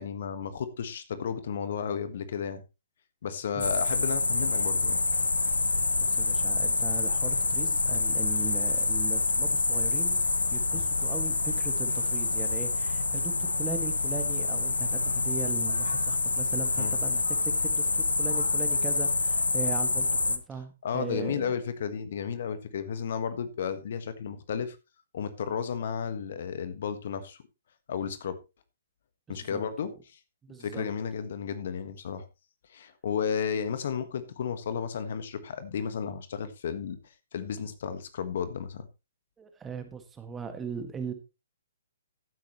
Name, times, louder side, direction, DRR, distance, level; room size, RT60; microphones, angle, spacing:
voice 1, 0.0-2.6 3.2-5.0 10.7-10.9 16.8-17.0 20.8-24.8 25.1-27.4 27.9-28.4 29.3-30.2 30.6-32.2 32.7-37.0 37.3-38.9, left 7 dB, 55° left, 1.5 m, -33 dB
sound 1, 3.6-20.4, left 3 dB, 80° left, 1.1 m, -27 dB
voice 2, 6.0-10.2 10.5-21.5 29.3-29.9 30.4-30.9 39.4-41.1, right 5 dB, 15° right, 1.8 m, -39 dB
15.0 x 8.8 x 3.1 m
figure-of-eight pair, 125°, 0 cm